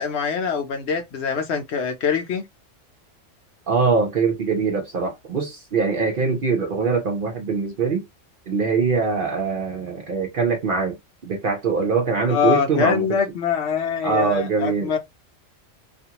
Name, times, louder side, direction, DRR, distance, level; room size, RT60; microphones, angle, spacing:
voice 1, 0.0-2.4 12.3-15.0, left 6 dB, 65° left, 0.8 m, -24 dB
voice 2, 3.7-8.0 8.5-11.0 11.2-13.2 14.0-14.9, right 4 dB, 55° right, 0.6 m, -23 dB
2.4 x 2.3 x 2.8 m
omnidirectional pair, 1.3 m